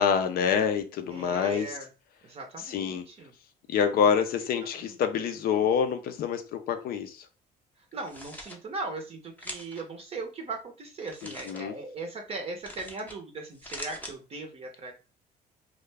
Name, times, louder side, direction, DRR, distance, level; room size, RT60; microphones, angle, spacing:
voice 1, 0.0-1.7 2.7-3.0 3.7-7.3 11.2-11.7, left 7 dB, 60° left, 0.4 m, -26 dB
voice 2, 1.1-1.9 2.2-3.3 4.8-5.0 7.8-14.9, right 3 dB, 35° right, 0.6 m, -39 dB
sound 1, 7.9-8.6 9.4-9.8 11.0-11.6 12.6-13.2 13.5-14.1, left 1 dB, 10° left, 0.6 m, -42 dB
2.4 x 2.1 x 3.2 m
cardioid pair, 110°, 17 cm